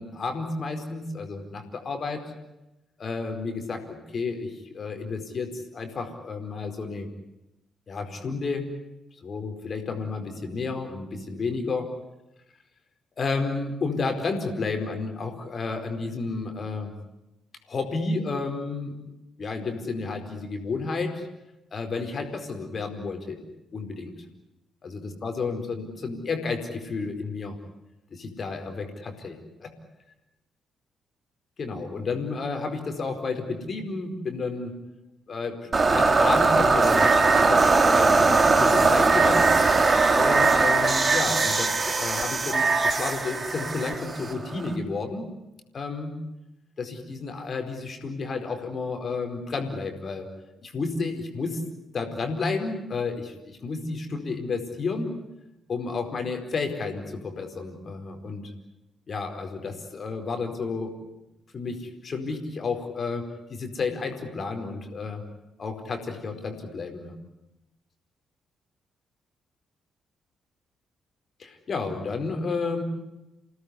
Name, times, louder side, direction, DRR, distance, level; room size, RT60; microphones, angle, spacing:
voice 1, 0.0-2.2 3.0-7.1 7.9-8.7 9.2-11.9 13.2-16.9 17.7-19.0 19.4-21.3 21.7-23.4 23.7-24.1 24.8-27.6 28.1-29.7 31.6-34.8 35.3-39.5 40.1-45.3 45.7-46.2 46.8-50.3 50.6-51.6 51.9-55.2 55.7-58.5 59.1-60.9 61.5-65.2 65.6-67.1 71.4-72.8, left 4 dB, 40° left, 5 dB, 4.6 m, -31 dB
sound 1, 35.7-44.7, right 3 dB, 35° right, 3.1 m, -20 dB
28.5 x 18.0 x 9.9 m, 0.94 s
figure-of-eight pair, 40°, 0 cm